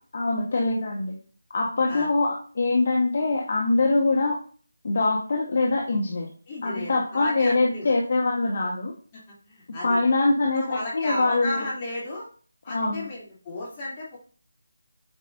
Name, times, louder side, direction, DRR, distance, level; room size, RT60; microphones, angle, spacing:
voice 1, 0.1-1.2 1.5-4.4 4.8-6.3 6.6-8.9 9.8-11.7 12.7-13.1, left 3 dB, 50° left, 0 dB, 1.4 m, -23 dB
voice 2, 6.5-7.9 9.3-10.0 10.5-12.3 12.6-14.2, left 1 dB, 25° left, -6 dB, 3.1 m, -34 dB
8.3 x 5.1 x 2.7 m, 0.42 s
figure-of-eight pair, 165°, 0 cm